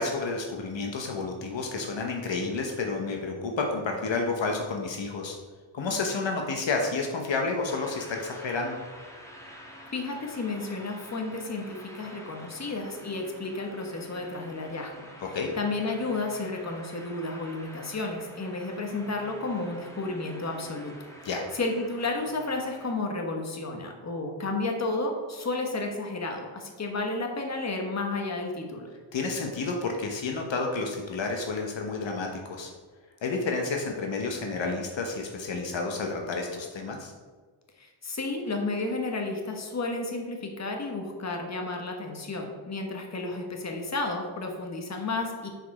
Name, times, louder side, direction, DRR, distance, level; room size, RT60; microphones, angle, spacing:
voice 1, 0.0-5.4 5.7-8.8 15.2-15.5 21.2-21.4 29.1-32.7 33.2-37.1, left 3 dB, 65° left, 2 dB, 1.0 m, -30 dB
sound 1, 7.6-22.9, equal, 5° left, 1.3 m, -48 dB
voice 2, 9.9-14.9 15.5-20.9 21.5-28.9 37.8-45.5, left 2 dB, 35° left, 2 dB, 1.2 m, -32 dB
6.4 x 4.9 x 4.8 m, 1.4 s
wide cardioid pair, 95°, 49 cm